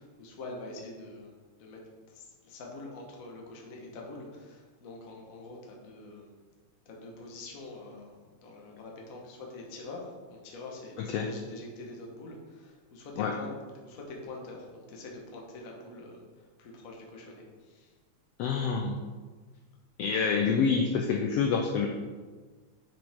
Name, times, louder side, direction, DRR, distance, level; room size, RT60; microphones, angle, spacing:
voice 1, 0.0-1.3 1.6-1.8 2.1-6.3 6.8-13.5 13.7-17.9, left 2 dB, 55° left, -1 dB, 0.9 m, -45 dB
voice 2, 11.0-11.3 13.2-13.3 18.4-19.0 20.0-21.9, left 5 dB, 85° left, 3 dB, 1.4 m, -27 dB
9.3 x 5.1 x 3.6 m, 1.4 s
omnidirectional pair, 3.4 m